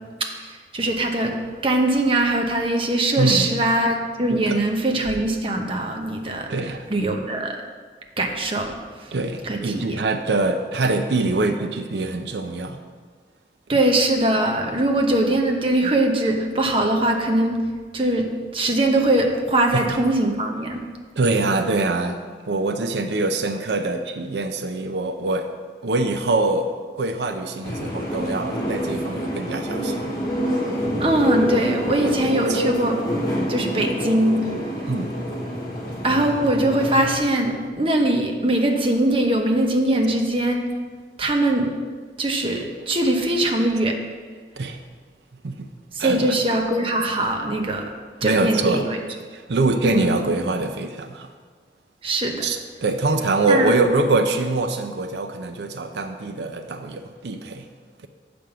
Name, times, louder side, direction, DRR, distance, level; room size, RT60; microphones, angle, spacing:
voice 1, 0.2-1.4 1.6-6.5 6.9-7.6 8.2-9.1 9.4-10.0 13.7-17.6 17.9-20.8 31.0-33.0 33.5-34.4 36.0-40.7 41.2-41.7 42.2-44.0 45.9-47.9 48.2-49.0 49.8-50.1 52.0-52.4 53.5-53.8, right 1 dB, 30° right, 3 dB, 0.8 m, -21 dB
voice 2, 3.2-3.6 4.3-4.6 6.5-6.9 9.1-12.8 19.7-20.0 21.2-25.5 25.8-30.1 32.0-32.1 32.5-32.6 34.9-35.1 44.6-44.8 45.4-45.7 46.0-46.4 48.2-48.9 49.3-51.3 52.4-57.7, right 3 dB, 80° right, 7 dB, 0.5 m, -24 dB
sound 1, 27.6-37.2, equal, 25° left, 1.6 m, -26 dB
7.5 x 5.2 x 6.8 m, 1.6 s
head